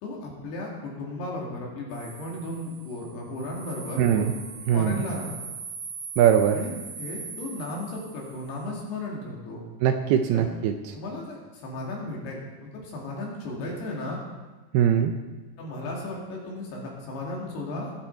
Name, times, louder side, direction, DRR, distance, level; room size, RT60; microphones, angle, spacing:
voice 1, 0.0-4.3 4.7-5.3 6.5-6.7 7.0-9.6 10.3-10.4 10.9-14.2 15.6-17.9, left 2 dB, 65° left, -2 dB, 4.0 m, -35 dB
sound 1, 1.9-8.7, right 5 dB, 55° right, 3.1 m, -41 dB
voice 2, 4.0-4.3 4.7-5.0 6.2-6.6 9.8-10.7 14.7-15.1, right 9 dB, 80° right, 6 dB, 2.3 m, -21 dB
20.0 x 7.4 x 4.5 m, 1.2 s
omnidirectional pair, 5.2 m